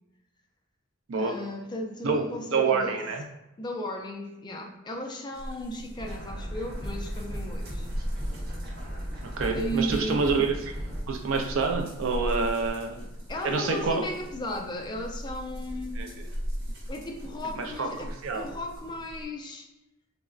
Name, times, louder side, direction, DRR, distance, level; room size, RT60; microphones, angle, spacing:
voice 1, 1.2-3.1 3.6-7.9 9.5-10.2 13.3-16.1 16.9-19.7, equal, 20° left, 2 dB, 0.3 m, -35 dB
voice 2, 2.0-3.2 9.2-10.7 11.1-13.0 13.4-14.0 16.0-16.3 17.6-18.5, right 4 dB, 70° right, 4 dB, 0.4 m, -27 dB
sound 1, 5.3-19.3, equal, 90° right, 0.9 m, -38 dB
sound 2, 6.0-11.0, equal, 50° right, 0.8 m, -37 dB
3.5 x 2.0 x 2.4 m, 0.92 s
head